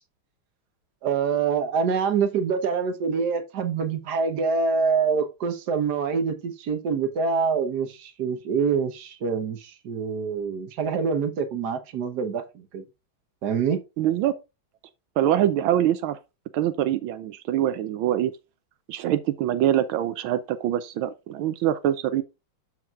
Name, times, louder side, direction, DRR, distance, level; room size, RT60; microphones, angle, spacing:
voice 1, 1.0-12.8 13.4-13.8, right 5 dB, 60° right, 1.5 m, -25 dB
voice 2, 14.0-14.3 15.2-16.2 16.5-18.3 18.9-22.2, right 11 dB, 85° right, 1.4 m, -24 dB
13.0 x 4.5 x 2.4 m
omnidirectional pair, 2.2 m